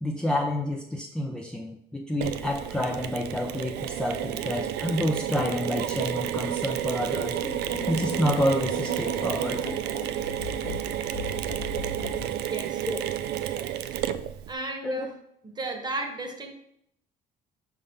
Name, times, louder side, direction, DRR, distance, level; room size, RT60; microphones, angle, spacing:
voice 1, 0.0-7.4 7.9-9.6 12.8-13.1 14.8-15.1, left 1 dB, 5° left, 0 dB, 0.5 m, -29 dB
Mechanisms, 2.2-14.5, right 11 dB, 80° right, 0.4 m, -31 dB
sound 1, 7.2-12.3, left 4 dB, 70° left, 1.1 m, -39 dB
voice 2, 12.4-12.8 14.5-15.1 15.4-16.5, right 2 dB, 25° right, 4 dB, 1.1 m, -34 dB
4.9 x 3.6 x 5.4 m, 0.73 s
cardioid pair, 110°, 17 cm